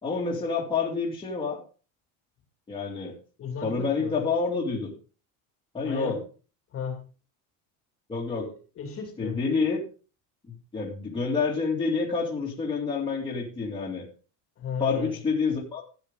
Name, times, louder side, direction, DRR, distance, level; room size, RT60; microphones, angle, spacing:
voice 1, 0.0-1.6 2.7-3.2 3.6-4.9 5.7-6.2 8.1-8.5 9.2-9.8 10.5-14.0 14.8-15.8, left 4 dB, 15° left, -3 dB, 2.6 m, -28 dB
voice 2, 3.4-4.2 5.8-6.2 6.7-7.1 8.4-9.4 14.6-15.2, left 6 dB, 35° left, 3 dB, 2.5 m, -35 dB
13.0 x 9.4 x 3.8 m, 0.37 s
cardioid pair, 165°, 39 cm